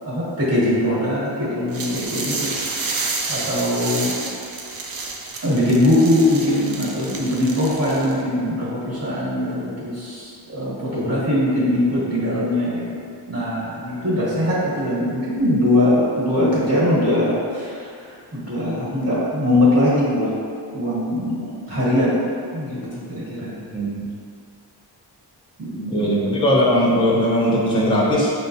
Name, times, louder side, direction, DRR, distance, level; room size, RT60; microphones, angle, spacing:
voice 1, 0.0-4.1 5.4-13.0 13.3-20.3 20.7-23.5 25.6-26.1, left 1 dB, 35° right, -9 dB, 1.4 m, -21 dB
sound 1, 1.7-8.2, right 3 dB, 55° right, 0.5 m, -30 dB
voice 2, 25.9-28.3, equal, 10° left, -5 dB, 0.6 m, -19 dB
5.2 x 2.1 x 2.6 m, 2.3 s
wide cardioid pair, 80°, 43 cm